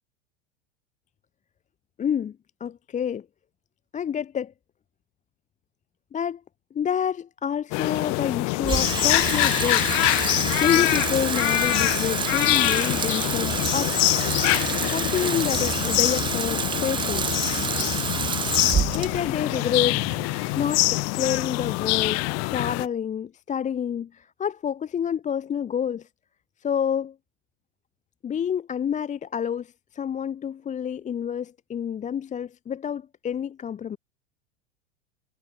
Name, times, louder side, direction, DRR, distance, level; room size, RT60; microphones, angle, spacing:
voice 1, 2.0-3.3 3.9-4.5 6.1-6.4 6.7-9.9 10.2-14.0 14.9-17.3 18.9-26.1 26.6-27.1 28.2-34.0, left 8 dB, 20° left, 0.9 m, -28 dB
sound 1, 7.7-22.9, left 32 dB, 45° left, 0.9 m, -24 dB
Water tap faucet / Sink (filling or washing), 8.6-21.0, right 7 dB, 15° right, 0.5 m, -29 dB
hypercardioid pair, 95°, 38 cm